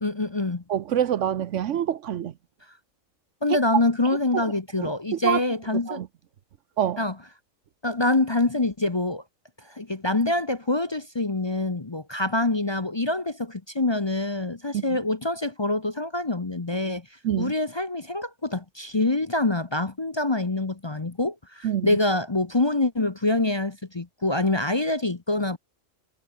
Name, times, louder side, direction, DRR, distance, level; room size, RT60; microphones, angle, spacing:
voice 1, 0.0-0.6 3.4-6.0 7.0-7.1 7.8-9.2 9.6-17.1 17.4-25.6, left 2 dB, 25° left, 0.8 m, -25 dB
voice 2, 0.7-2.3 3.5-3.6 4.3-4.5 4.8-5.4 5.9-6.1 6.8-7.0 14.7-15.0 17.2-17.5 21.6-22.0, right 10 dB, 70° right, 1.0 m, -26 dB
omnidirectional pair, 1.4 m